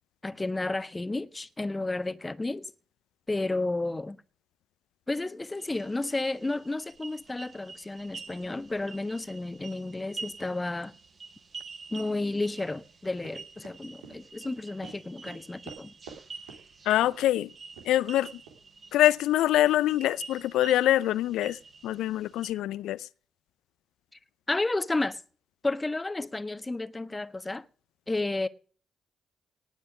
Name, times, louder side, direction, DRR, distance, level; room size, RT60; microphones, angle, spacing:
voice 1, 0.2-2.7 3.3-4.2 5.1-10.9 11.9-15.9 24.5-25.2 25.6-27.6 28.1-28.5, left 2 dB, 20° left, 1.2 m, -32 dB
sound 1, 5.6-22.5, right 4 dB, 45° right, 7.9 m, -47 dB
Run, 13.2-16.2 16.5-16.6 17.0-17.3 17.8-17.9 18.5-18.6, right 6 dB, 85° right, 3.3 m, -47 dB
voice 2, 16.9-17.5 17.9-18.3 18.9-21.6 21.8-23.0, left 13 dB, 75° left, 0.5 m, -24 dB
18.5 x 7.2 x 5.0 m
hypercardioid pair, 45°, 0 cm